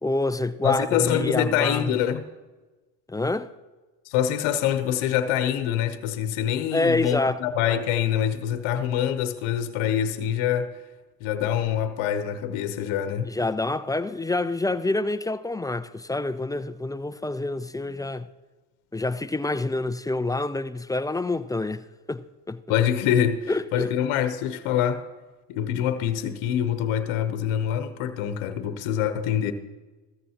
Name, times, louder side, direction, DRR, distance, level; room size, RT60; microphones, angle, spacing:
voice 1, 0.0-2.0 3.1-3.5 6.7-7.4 13.2-18.3 18.9-21.8 22.1-22.6 23.5-23.9, left 2 dB, 10° left, 0.3 m, -27 dB
voice 2, 0.6-2.2 4.1-10.8 11.2-13.3 22.7-25.0 25.5-29.5, left 10 dB, 75° left, 1.0 m, -25 dB
14.5 x 14.0 x 2.9 m
supercardioid pair, 70°, 49 cm